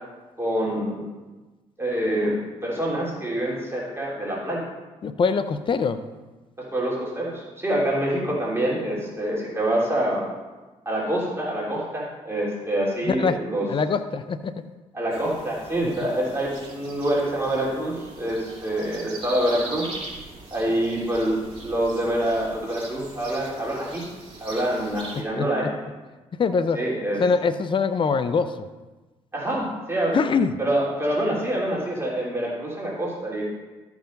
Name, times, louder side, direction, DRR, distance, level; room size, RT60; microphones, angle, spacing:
voice 1, 0.4-1.0 1.8-2.3 2.6-4.6 6.6-10.2 10.8-13.7 14.9-19.9 20.5-24.0 24.4-25.7 26.7-27.2 29.3-30.2 30.6-33.4, right 1 dB, 20° right, -5 dB, 3.2 m, -26 dB
voice 2, 5.0-6.0 13.1-13.4 13.7-14.5 25.4-25.5 26.4-26.8 27.2-28.7 30.1-30.5, left 5 dB, 40° left, 11 dB, 0.6 m, -23 dB
sound 1, 15.1-25.2, right 2 dB, 40° right, 2.4 m, -41 dB
13.0 x 4.8 x 5.3 m, 1.2 s
supercardioid pair, 65°, 13 cm